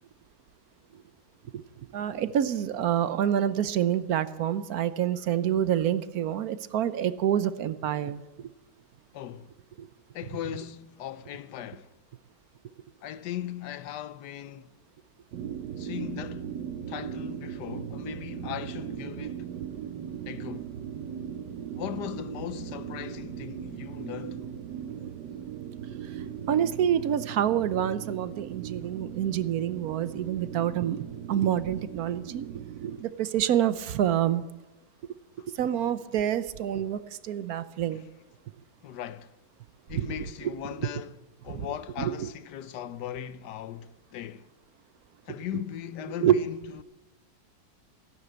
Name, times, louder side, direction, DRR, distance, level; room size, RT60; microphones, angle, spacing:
voice 1, 1.9-8.2 9.8-9.9 26.5-32.5 32.8-34.4 35.6-38.0 39.9-40.1 41.5-41.7 42.0-42.1 46.2-46.4, right 10 dB, 65° right, 1.1 m, -27 dB
voice 2, 9.1-9.5 10.1-11.9 13.0-14.7 15.8-16.5 16.9-19.5 20.3-20.7 21.7-24.4 35.4-35.5 37.9-38.1 38.8-39.3 39.9-41.2 41.4-44.4 45.3-46.8, left 10 dB, 80° left, 1.3 m, -38 dB
sound 1, 15.3-33.0, right 9 dB, 85° right, 1.4 m, -38 dB
16.0 x 11.0 x 8.0 m
omnidirectional pair, 1.8 m